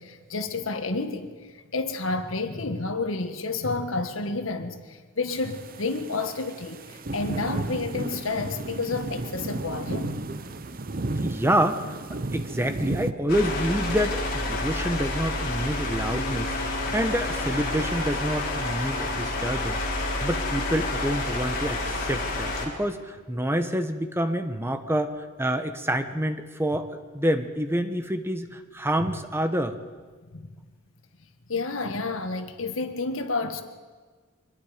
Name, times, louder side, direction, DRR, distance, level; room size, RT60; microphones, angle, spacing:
voice 1, 0.0-1.3 1.7-10.2 10.5-10.6 16.9-17.0 29.0-29.1 30.3-30.5 31.5-33.6, left 3 dB, 80° left, 1.6 m, -30 dB
sound 1, 5.3-13.1, right 2 dB, 45° right, 0.8 m, -33 dB
voice 2, 11.2-12.0 12.3-29.8, equal, 10° right, 1.1 m, -27 dB
sound 2, 13.3-22.6, left 2 dB, 50° left, 4.9 m, -29 dB
24.5 x 20.5 x 5.1 m
head